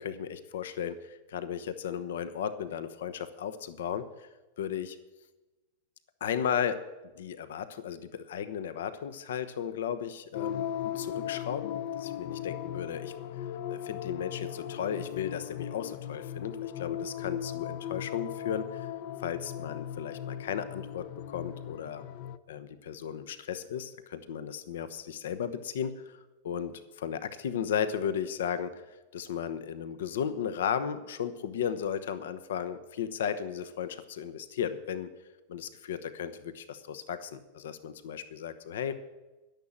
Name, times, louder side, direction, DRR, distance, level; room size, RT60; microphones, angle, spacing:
voice 1, 0.0-4.3 4.6-5.0 6.2-6.8 7.2-13.1 13.7-18.9 19.2-22.0 22.5-26.2 26.4-28.8 29.1-35.1 35.5-39.0, left 8 dB, 80° left, 12 dB, 1.0 m, -35 dB
sound 1, 10.3-22.4, left 10 dB, 40° left, 0.5 m, -38 dB
11.5 x 10.5 x 7.4 m, 1.1 s
supercardioid pair, 175°, 0 cm